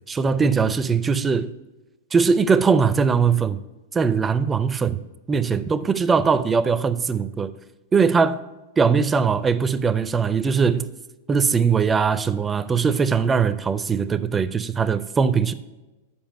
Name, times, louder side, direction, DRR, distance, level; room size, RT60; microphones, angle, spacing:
voice 1, 0.1-1.5 2.1-3.6 3.9-5.0 5.3-7.5 7.9-8.4 8.8-10.9 11.3-15.5, right 5 dB, 15° right, 13 dB, 0.4 m, -20 dB
7.0 x 5.0 x 4.9 m, 1.1 s
figure-of-eight pair, 95°, 0 cm